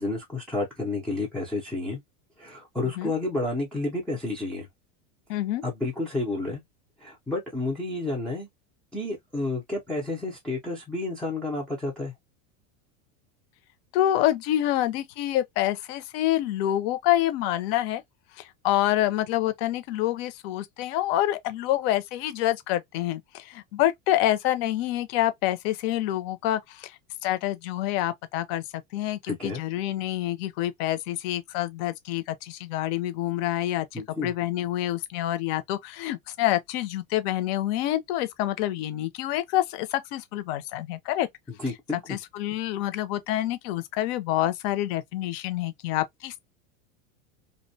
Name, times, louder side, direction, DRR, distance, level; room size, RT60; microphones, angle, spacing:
voice 1, 0.0-2.0 2.4-4.7 5.6-6.6 7.0-8.5 8.9-12.1 29.3-29.6 33.9-34.3 41.6-42.2, left 2 dB, ahead, 0.3 m, -30 dB
voice 2, 5.3-5.6 13.9-18.0 18.4-26.9 27.2-41.3 42.1-46.4, left 13 dB, 55° left, 0.5 m, -27 dB
2.5 x 2.1 x 2.6 m
supercardioid pair, 150°, 38 cm